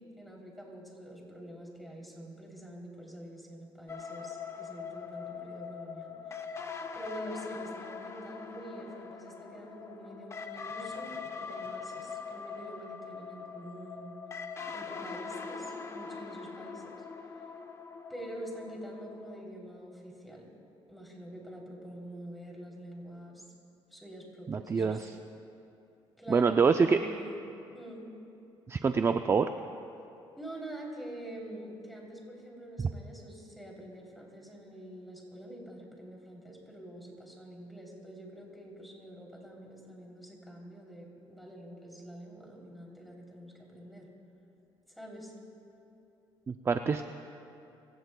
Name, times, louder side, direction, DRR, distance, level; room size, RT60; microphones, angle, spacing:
voice 1, 0.2-6.6 6.9-14.1 14.7-16.9 18.1-20.5 20.9-23.4 23.9-25.2 26.2-27.4 27.7-28.1 30.4-44.1 44.9-45.3, equal, ahead, -2 dB, 3.1 m, -46 dB
sound 1, 3.9-19.4, left 5 dB, 30° left, 0.8 m, -42 dB
voice 2, 24.5-25.1 26.3-27.0 28.7-29.5 46.5-47.0, right 5 dB, 25° right, 8 dB, 0.4 m, -26 dB
25.0 x 16.0 x 2.3 m, 2.9 s
cardioid pair, 105°, 10 cm